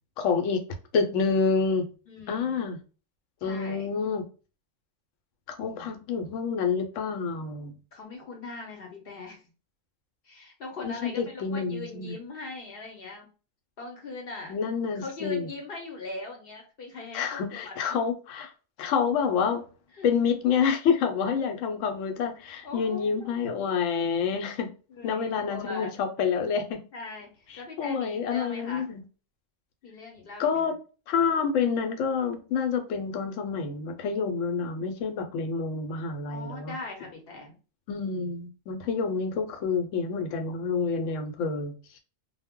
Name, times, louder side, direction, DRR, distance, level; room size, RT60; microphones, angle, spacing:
voice 1, 0.2-0.6 0.9-1.9 2.3-2.8 3.4-4.2 5.6-7.7 10.8-12.1 14.5-15.5 17.1-18.5 18.8-19.7 20.0-24.7 25.0-26.8 27.5-29.0 30.4-30.7 31.1-36.8 37.9-42.0, left 6 dB, 85° left, 0.9 m, -28 dB
voice 2, 2.1-2.7 3.4-3.9 5.6-6.0 7.9-9.4 10.2-13.3 13.8-14.6 14.9-18.0 20.0-20.1 22.6-23.6 24.9-25.9 26.9-28.9 29.8-30.7 36.3-37.5, left 3 dB, 60° left, 0.8 m, -41 dB
2.1 x 2.1 x 3.5 m
omnidirectional pair, 1.3 m